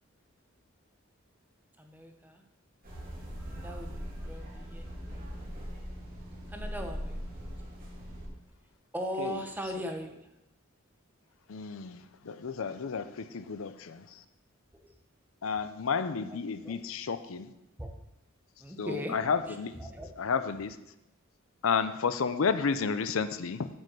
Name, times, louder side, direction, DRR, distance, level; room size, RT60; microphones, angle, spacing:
voice 1, 1.8-2.4 3.5-5.2 6.5-7.2 8.9-10.3 14.7-14.8 16.6-16.8 17.8-17.9 18.6-19.2 19.8-20.1, equal, 10° right, 4 dB, 1.1 m, -39 dB
sound 1, 2.8-8.3, equal, 45° right, 2.9 m, -40 dB
voice 2, 11.5-14.0 15.4-17.5 18.8-19.8 20.2-20.8 21.6-23.7, left 5 dB, 75° left, 12 dB, 0.6 m, -31 dB
8.9 x 5.4 x 7.7 m, 0.88 s
head